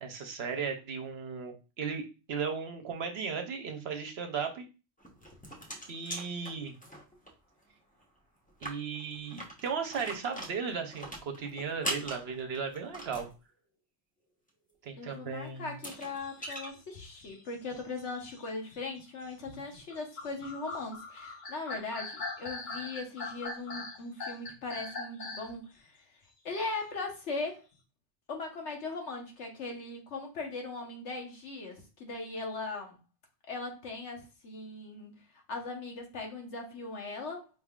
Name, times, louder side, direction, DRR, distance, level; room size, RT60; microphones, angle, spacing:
voice 1, 0.0-4.7 5.9-6.7 8.6-13.3 14.8-15.7, right 6 dB, 65° right, 6 dB, 0.9 m, -36 dB
sound 1, 5.0-7.3 7.6-7.7 8.0-8.1 8.5-13.3 15.1-15.2 15.7-16.7, right 1 dB, 5° left, 0.9 m, -41 dB
voice 2, 15.0-26.0 26.4-27.6 28.3-33.0 33.5-37.5, left 3 dB, 70° left, 2 dB, 1.4 m, -39 dB
sound 2, 15.9-25.6, left 3 dB, 45° left, 1.0 m, -42 dB
5.1 x 3.5 x 2.4 m, 0.30 s
omnidirectional pair, 1.2 m